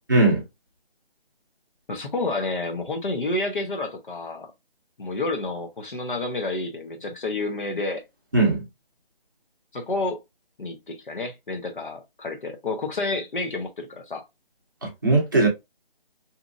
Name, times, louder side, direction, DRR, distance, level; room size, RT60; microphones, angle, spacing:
voice 1, 0.1-0.4 8.3-8.6 14.8-15.5, right 2 dB, 20° right, 0.7 m, -19 dB
voice 2, 1.9-4.5 5.0-8.1 9.7-10.2 10.6-14.2, left 2 dB, 55° left, 0.9 m, -29 dB
2.8 x 2.4 x 2.5 m
figure-of-eight pair, 170°, 30 cm